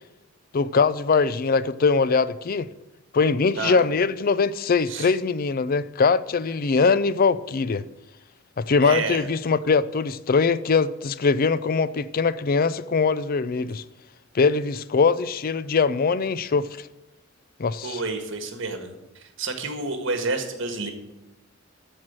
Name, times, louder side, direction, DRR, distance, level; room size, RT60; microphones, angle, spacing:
voice 1, 0.5-2.7 3.1-7.8 8.6-13.8 14.3-16.9 17.6-18.0, left 4 dB, 45° left, 0.4 m, -22 dB
voice 2, 8.8-9.3 17.8-20.9, right 3 dB, 65° right, 1.7 m, -29 dB
13.5 x 4.6 x 8.9 m
head